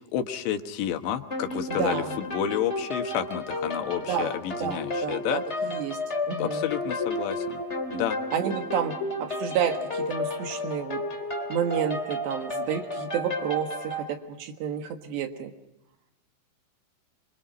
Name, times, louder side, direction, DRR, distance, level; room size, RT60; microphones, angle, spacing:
voice 1, 0.1-5.4 6.4-7.6 7.9-8.2, left 10 dB, 75° left, 7 dB, 3.4 m, -30 dB
sound 1, 1.3-14.1, left 1 dB, 20° left, 2.1 m, -32 dB
voice 2, 1.7-2.2 4.1-4.3 4.6-6.0 6.3-6.7 8.3-11.0 11.5-15.5, right 7 dB, 70° right, 6 dB, 3.6 m, -30 dB
26.0 x 25.5 x 5.3 m, 0.92 s
omnidirectional pair, 5.3 m